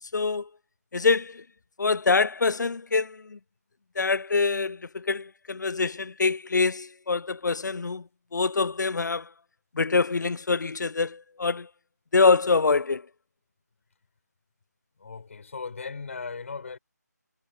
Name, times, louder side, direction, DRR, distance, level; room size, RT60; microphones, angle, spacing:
voice 1, 0.1-0.5 0.9-1.4 1.8-3.4 4.0-8.0 8.3-9.3 9.8-11.7 12.1-13.0, left 4 dB, 85° left, 0.4 m, -25 dB
voice 2, 15.0-16.8, left 4 dB, 45° left, 6.2 m, -37 dB
figure-of-eight pair, 165°, 10 cm